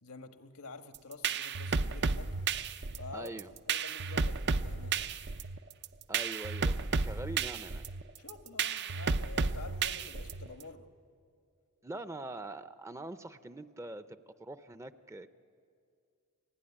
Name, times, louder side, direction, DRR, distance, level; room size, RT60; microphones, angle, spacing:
voice 1, 0.0-2.4 2.9-3.4 3.7-5.2 8.2-10.9, left 3 dB, 85° left, 7 dB, 1.5 m, -48 dB
sound 1, 0.9-10.6, right 4 dB, 50° right, 0.6 m, -33 dB
voice 2, 3.1-3.5 6.1-7.8 11.8-15.3, right 2 dB, 15° right, 11 dB, 0.6 m, -43 dB
28.5 x 17.5 x 10.0 m, 2.4 s
head